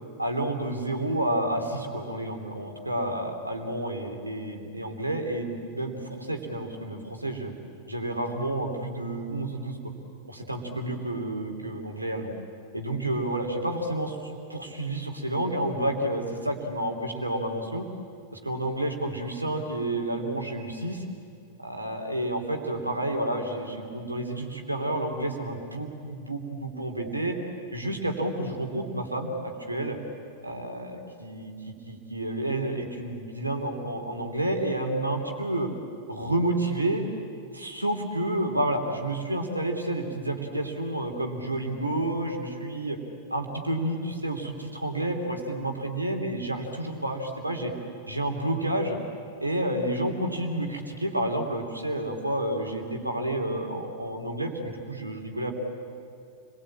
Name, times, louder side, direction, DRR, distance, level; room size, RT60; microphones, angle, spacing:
voice 1, 0.2-7.5 7.9-9.8 10.2-12.3 12.7-14.2 14.5-17.9 18.3-21.0 21.6-27.4 27.7-30.0 30.4-35.7 36.1-37.0 37.5-43.0 43.3-47.7 48.1-49.0 49.4-55.5, right 1 dB, 85° right, 3 dB, 3.1 m, -30 dB
29.5 x 22.0 x 8.7 m, 2.4 s
figure-of-eight pair, 90°, 0 cm